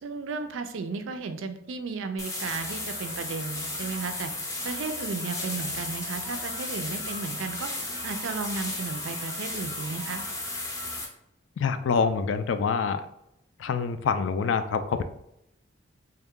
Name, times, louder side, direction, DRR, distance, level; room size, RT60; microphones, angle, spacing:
voice 1, 0.0-4.3 4.6-7.7 8.0-10.2, right 4 dB, 80° right, 8 dB, 0.4 m, -34 dB
sound 1, 2.2-11.1, left 2 dB, 15° left, 0.5 m, -34 dB
voice 2, 11.6-13.0 13.6-15.0, left 5 dB, 70° left, 11 dB, 0.3 m, -26 dB
3.4 x 2.2 x 3.6 m, 0.80 s
head